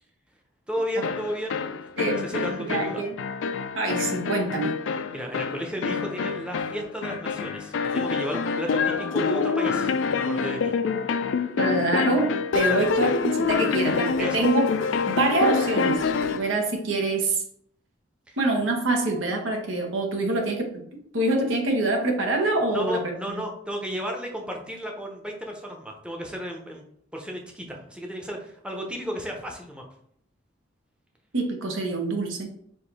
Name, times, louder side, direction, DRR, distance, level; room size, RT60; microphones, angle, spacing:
voice 1, 0.7-1.6 2.0-3.1 5.1-10.7 12.7-13.0 14.2-14.5 18.3-18.4 22.7-26.8 27.1-29.8, equal, 5° right, 1 dB, 0.7 m, -33 dB
sound 1, 1.0-16.5, left 5 dB, 70° left, 0.4 m, -26 dB
voice 2, 2.0-3.2 3.7-4.7 11.6-12.3 12.5-14.7 15.1-16.0 16.3-17.4 18.4-20.8 21.1-23.0 23.3-23.4 31.3-32.5, right 2 dB, 80° right, 2 dB, 1.0 m, -25 dB
4.8 x 2.6 x 4.1 m, 0.66 s
head